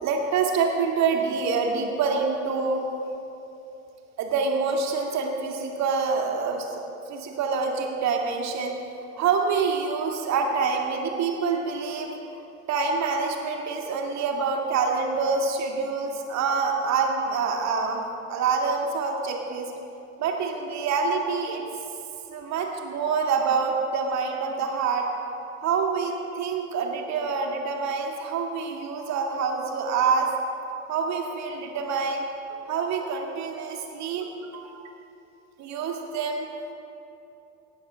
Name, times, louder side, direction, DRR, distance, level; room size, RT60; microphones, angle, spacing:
voice 1, 0.0-2.8 4.2-6.7 7.1-8.7 9.2-12.1 12.7-19.7 20.2-21.6 22.3-25.1 25.6-30.3 30.9-32.2 32.7-34.7 35.6-36.5, right 5 dB, 40° right, 2 dB, 1.8 m, -26 dB
18.5 x 7.1 x 4.9 m, 2.9 s
figure-of-eight pair, 70°, 41 cm